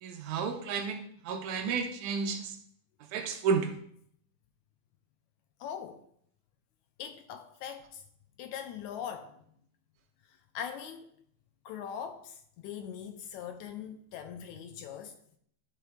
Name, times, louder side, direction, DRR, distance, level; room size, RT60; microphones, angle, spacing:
voice 1, 0.0-2.6 3.1-3.7, right 5 dB, 80° right, 1.9 m, -32 dB
voice 2, 5.6-6.0 7.0-8.0 8.4-9.4 10.3-11.1 11.7-15.2, left 8 dB, 80° left, 1.8 m, -41 dB
11.0 x 3.8 x 3.3 m
omnidirectional pair, 3.6 m